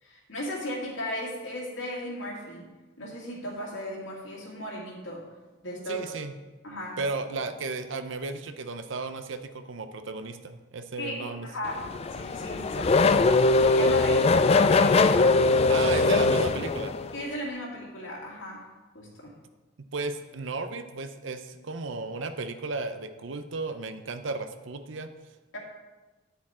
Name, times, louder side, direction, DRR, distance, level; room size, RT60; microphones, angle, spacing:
voice 1, 0.0-2.7 3.0-5.2 5.6-6.1 6.6-7.0 11.0-13.3 13.6-15.6 17.1-18.7 18.9-19.3 25.5-25.6, left 1 dB, 75° left, -5 dB, 2.3 m, -36 dB
voice 2, 5.9-6.3 7.0-11.5 15.7-16.9 19.9-25.1, right 3 dB, 70° right, 9 dB, 0.7 m, -34 dB
Race car auto racing / Accelerating revving vroom, 11.7-17.2, left 3 dB, 30° left, 0.3 m, -21 dB
9.6 x 7.1 x 4.3 m, 1.2 s
head